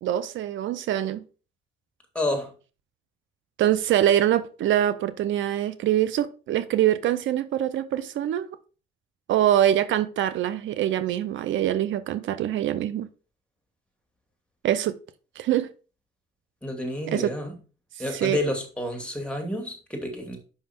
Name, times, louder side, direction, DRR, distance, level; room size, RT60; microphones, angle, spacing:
voice 1, 0.0-1.2 3.6-8.5 9.3-13.1 14.6-14.9 15.4-15.7 17.1-17.3 18.1-18.4, right 11 dB, 75° right, 0.6 m, -24 dB
voice 2, 2.1-2.5 16.6-17.6 18.0-20.4, left 1 dB, 5° left, 2.5 m, -29 dB
5.7 x 5.6 x 4.4 m
cardioid pair, 90°, 20 cm